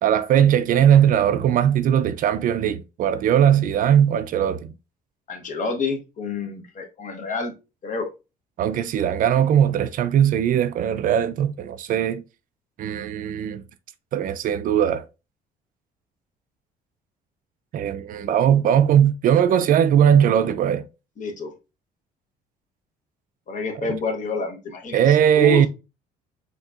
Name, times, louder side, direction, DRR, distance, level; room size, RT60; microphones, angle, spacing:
voice 1, 0.0-4.7 8.6-12.2 12.8-13.6 14.1-15.1 17.7-20.8 24.9-25.7, right 9 dB, 55° right, 0.4 m, -19 dB
voice 2, 5.3-7.5 7.8-8.1 21.2-21.5 23.5-25.7, left 4 dB, 50° left, 1.0 m, -28 dB
4.3 x 2.8 x 2.4 m
cardioid pair, 110°, 17 cm